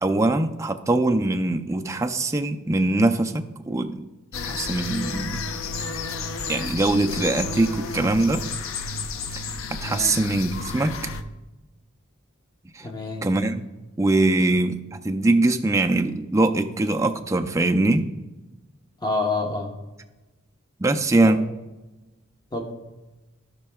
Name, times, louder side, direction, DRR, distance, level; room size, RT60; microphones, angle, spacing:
voice 1, 0.0-4.0 4.4-5.4 6.5-8.4 9.7-11.0 12.8-12.9 13.2-13.7 14.0-18.1 20.8-21.4, right 2 dB, 15° right, 5 dB, 0.4 m, -22 dB
sound 1, 4.3-11.2, left 4 dB, 70° left, 0.6 m, -31 dB
voice 2, 9.8-10.2 12.8-13.2 19.0-19.8 21.2-21.4 22.5-22.8, left 3 dB, 20° left, 2 dB, 0.9 m, -28 dB
15.5 x 5.5 x 2.3 m, 1.1 s
head